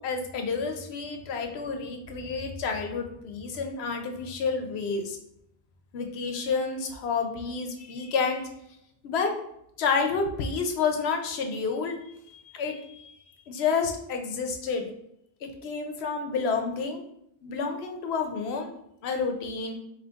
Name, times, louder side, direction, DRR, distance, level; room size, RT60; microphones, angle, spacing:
voice 1, 0.0-5.2 5.9-8.5 9.0-9.3 9.8-13.2 13.5-14.9 15.4-17.0 17.4-18.7 19.0-19.8, left 5 dB, 85° left, 4 dB, 0.9 m, -30 dB
3.5 x 2.9 x 3.8 m, 0.77 s
omnidirectional pair, 1.0 m